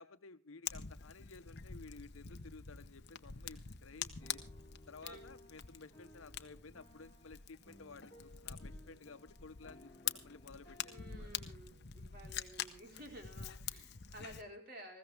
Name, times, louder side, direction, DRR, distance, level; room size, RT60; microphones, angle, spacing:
voice 1, 0.0-4.4 4.9-11.3, left 4 dB, 85° left, 11 dB, 1.0 m, -55 dB
Fire, 0.7-14.4, left 9 dB, 55° left, 0.9 m, -46 dB
sound 1, 4.2-11.6, left 1 dB, 15° left, 2.0 m, -60 dB
voice 2, 10.9-15.0, equal, 50° right, 2 dB, 4.3 m, -53 dB
20.0 x 15.0 x 3.4 m, 0.33 s
head